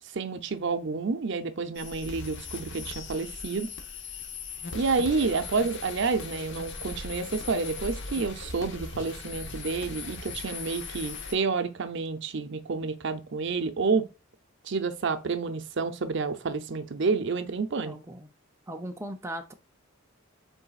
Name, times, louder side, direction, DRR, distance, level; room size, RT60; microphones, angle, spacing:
voice 1, 0.1-3.7 4.7-14.1 14.6-18.0, right 4 dB, 60° right, 0.6 m, -29 dB
sound 1, 1.8-11.3, left 4 dB, 60° left, 0.9 m, -39 dB
voice 2, 17.8-18.3 18.7-19.5, right 1 dB, 15° right, 0.5 m, -38 dB
5.4 x 4.0 x 2.3 m
head